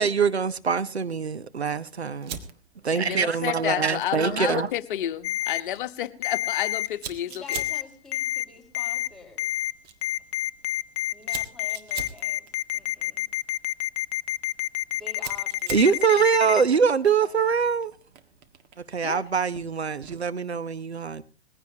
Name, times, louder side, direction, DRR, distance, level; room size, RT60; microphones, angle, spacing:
voice 1, 0.0-2.4 2.8-4.7 15.7-17.9 18.9-21.2, right 6 dB, 85° right, 1.1 m, -23 dB
Fire, 2.2-20.4, right 8 dB, 30° right, 1.7 m, -45 dB
voice 2, 2.9-7.6 19.0-19.3, left 12 dB, 50° left, 1.2 m, -30 dB
Ringtone, 5.2-5.6 6.2-6.9 7.5-7.8 8.1-8.4 8.7-9.1 9.4-9.7 10.0-16.6, left 13 dB, 35° left, 0.7 m, -28 dB
voice 3, 7.2-9.4 11.1-13.3 14.9-16.2 16.4-17.5, left 3 dB, ahead, 4.8 m, -48 dB
20.5 x 16.0 x 2.9 m
figure-of-eight pair, 110°, 32 cm